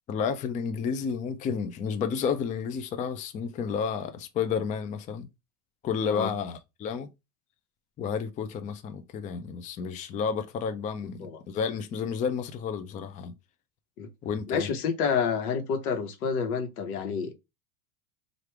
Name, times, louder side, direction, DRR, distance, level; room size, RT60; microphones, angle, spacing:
voice 1, 0.1-5.3 5.8-7.1 8.0-13.3 14.2-14.7, left 6 dB, 20° left, 0.3 m, -31 dB
voice 2, 11.0-11.4 14.0-14.1 14.5-17.3, left 6 dB, 85° left, 1.1 m, -29 dB
3.2 x 2.5 x 4.4 m
supercardioid pair, 120°, 43 cm